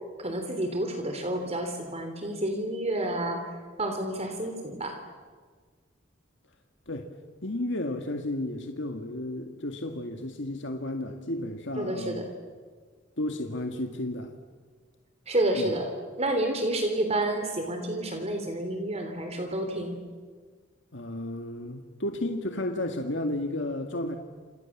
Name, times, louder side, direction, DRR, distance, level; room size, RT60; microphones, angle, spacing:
voice 1, 0.2-3.5 3.8-5.0 11.8-12.2 15.3-15.9 16.2-20.0, right 1 dB, 35° right, 5 dB, 3.5 m, -29 dB
voice 2, 7.4-12.3 13.2-14.3 15.5-15.8 20.9-24.2, left 1 dB, 65° left, 4 dB, 2.1 m, -33 dB
28.5 x 28.5 x 7.4 m, 1.5 s
head